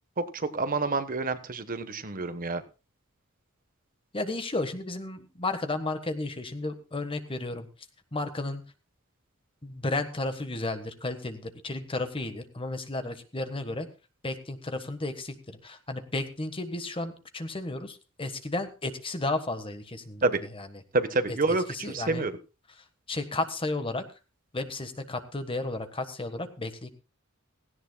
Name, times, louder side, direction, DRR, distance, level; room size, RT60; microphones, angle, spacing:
voice 1, 0.2-2.6 20.2-20.4 20.9-22.3, right 3 dB, 40° right, 10 dB, 1.2 m, -28 dB
voice 2, 4.1-7.7 8.1-8.6 9.6-13.9 14.2-20.7 21.3-22.2 23.1-24.0 24.5-26.9, left 2 dB, 25° left, 9 dB, 1.4 m, -33 dB
17.5 x 16.0 x 2.3 m, 0.31 s
head